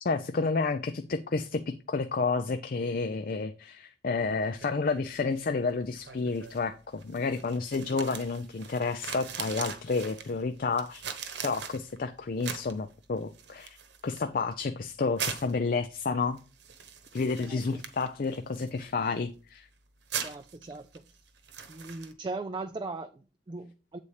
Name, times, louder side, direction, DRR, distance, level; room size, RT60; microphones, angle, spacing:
voice 1, 0.0-11.0 11.4-13.8 14.0-16.4 17.1-19.7, left 4 dB, 50° left, 0.4 m, -30 dB
sound 1, 4.2-22.1, right 7 dB, 65° right, 1.0 m, -43 dB
voice 2, 17.4-17.8 20.2-21.0 21.7-24.0, right 3 dB, 25° right, 0.4 m, -39 dB
8.4 x 4.2 x 4.9 m
head